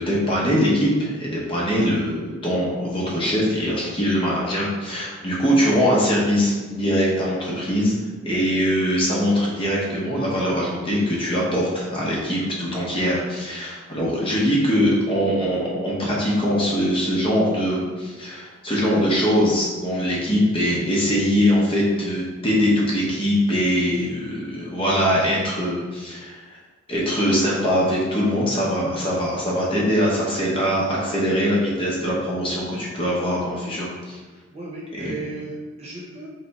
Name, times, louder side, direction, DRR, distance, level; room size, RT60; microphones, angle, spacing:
voice 1, 0.0-7.9 8.2-26.6 26.9-34.2 35.0-35.1, equal, 25° left, -5 dB, 0.9 m, -22 dB
voice 2, 34.5-36.3, right 2 dB, 30° right, -5 dB, 1.0 m, -35 dB
3.4 x 3.3 x 4.1 m, 1.3 s
head